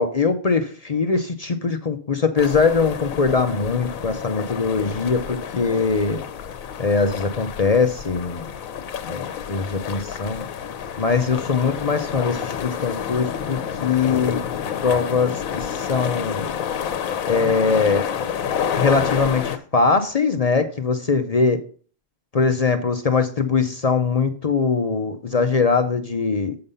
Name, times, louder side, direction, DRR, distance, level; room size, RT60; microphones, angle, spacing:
voice 1, 0.0-6.2 6.8-8.5 9.1-10.4 11.0-14.4 14.8-16.5 17.3-18.1 18.7-21.6 22.3-26.6, left 4 dB, 45° left, 8 dB, 0.5 m, -21 dB
sound 1, 2.4-19.6, left 8 dB, 70° left, 1.1 m, -29 dB
7.9 x 5.4 x 5.5 m, 0.42 s
omnidirectional pair, 1.5 m